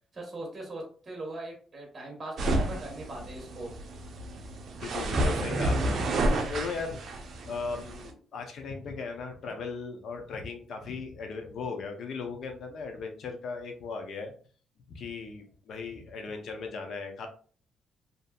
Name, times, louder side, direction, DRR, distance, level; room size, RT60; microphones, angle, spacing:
voice 1, 0.1-3.8, right 2 dB, 30° right, 0 dB, 1.1 m, -40 dB
sound 1, 2.4-8.1, right 1 dB, 60° right, 0.5 m, -30 dB
voice 2, 4.8-7.0 7.5-14.3 14.9-17.3, left 4 dB, 65° left, 5 dB, 0.6 m, -37 dB
2.6 x 2.5 x 2.3 m, 0.43 s
cardioid pair, 90°, 0 cm